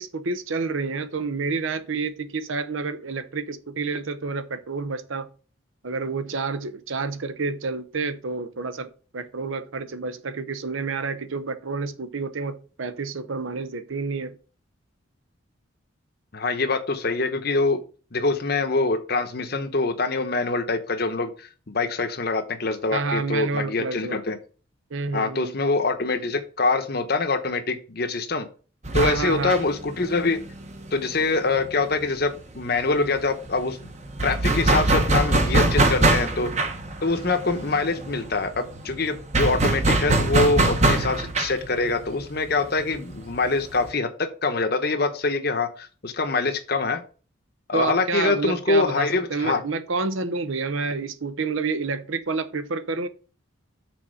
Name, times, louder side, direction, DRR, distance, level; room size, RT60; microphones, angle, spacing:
voice 1, 0.0-5.3 5.8-14.4 22.9-24.2 24.9-25.5 29.0-29.6 47.7-53.1, right 4 dB, 75° right, 0.8 m, -29 dB
voice 2, 16.3-17.8 18.1-24.4 25.1-28.5 28.9-30.4 30.9-33.8 34.2-36.5 37.0-47.0 47.7-49.6, left 3 dB, 50° left, 0.9 m, -24 dB
sound 1, 28.8-32.3 32.5-32.6 32.9-43.9, right 2 dB, 35° right, 1.1 m, -24 dB
6.2 x 4.2 x 6.4 m
head